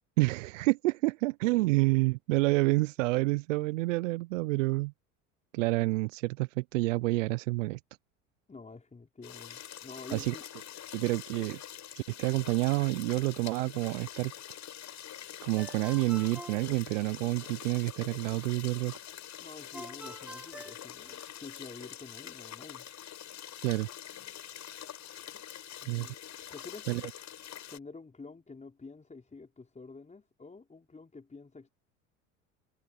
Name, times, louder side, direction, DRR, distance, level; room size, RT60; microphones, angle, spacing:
voice 1, 0.2-4.9 5.5-7.8 10.1-10.3 10.9-11.6 12.0-14.3 15.4-18.9 23.6-23.9 25.9-26.1 26.9-27.0, right 22 dB, 75° right, 0.6 m, -28 dB
voice 2, 8.5-10.4 19.4-22.9 25.8-26.2 26.5-26.9 27.7-31.7, left 4 dB, 20° left, 5.2 m, -48 dB
sound 1, 9.2-27.8, left 11 dB, 45° left, 6.9 m, -45 dB
Ringtone, 15.6-17.5 19.7-21.7, right 1 dB, 5° right, 6.7 m, -48 dB
hypercardioid pair, 75°, 38 cm